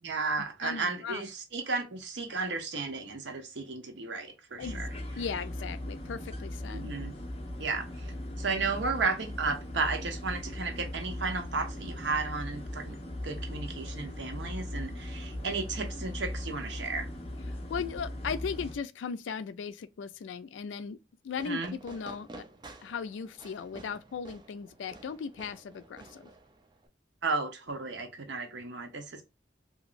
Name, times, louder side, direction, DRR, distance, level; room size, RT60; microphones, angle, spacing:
voice 1, 0.0-4.9 6.7-7.1 7.6-8.1 8.4-13.0 13.2-17.1 21.4-21.8 27.2-29.2, right 4 dB, 70° right, 0.8 m, -34 dB
voice 2, 0.6-1.2 4.6-4.8 5.2-6.9 17.7-21.0 21.2-22.4 22.8-26.3, left 6 dB, 90° left, 0.3 m, -37 dB
sound 1, 4.6-18.8, left 1 dB, 35° left, 0.8 m, -39 dB
Fireworks, 21.3-26.9, right 2 dB, 25° right, 0.5 m, -50 dB
2.9 x 2.6 x 2.4 m
head